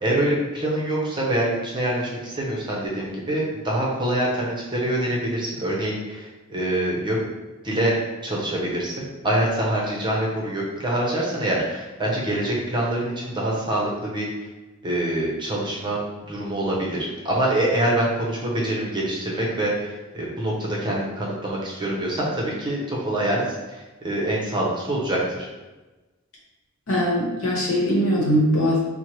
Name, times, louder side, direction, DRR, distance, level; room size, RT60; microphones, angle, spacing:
voice 1, 0.0-7.2 7.6-8.0 8.2-14.3 14.8-25.5, right 1 dB, 20° right, -4 dB, 0.6 m, -25 dB
voice 2, 26.9-28.8, equal, 65° left, -4 dB, 1.1 m, -21 dB
4.4 x 2.1 x 3.0 m, 1.1 s
head